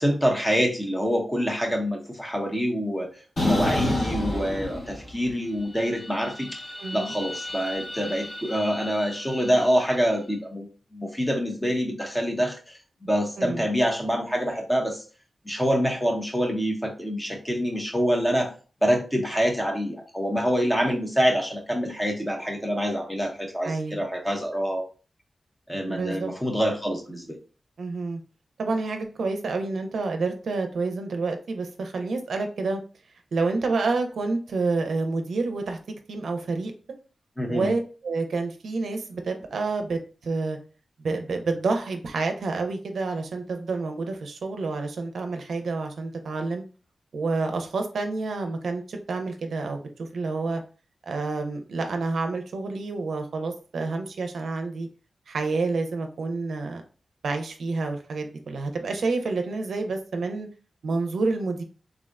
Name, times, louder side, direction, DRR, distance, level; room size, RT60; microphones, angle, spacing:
voice 1, 0.0-3.1 3.4-6.6 6.9-10.7 10.9-15.0 15.5-18.5 18.8-24.8 25.7-27.4 37.4-37.7, equal, 10° left, 1 dB, 0.7 m, -26 dB
sound 1, 3.4-5.3 5.6-9.9, left 1 dB, 60° left, 1.1 m, -31 dB
voice 2, 6.8-7.1 13.4-13.7 23.6-24.0 25.9-26.3 27.8-28.2 28.6-32.8 33.3-35.8 36.1-36.7 37.5-40.6 41.0-46.6 47.1-50.6 51.1-54.9 55.3-56.8 57.2-60.5 60.8-61.6, right 3 dB, 90° right, 5 dB, 0.4 m, -28 dB
3.5 x 2.1 x 2.3 m, 0.36 s
wide cardioid pair, 100°, 0 cm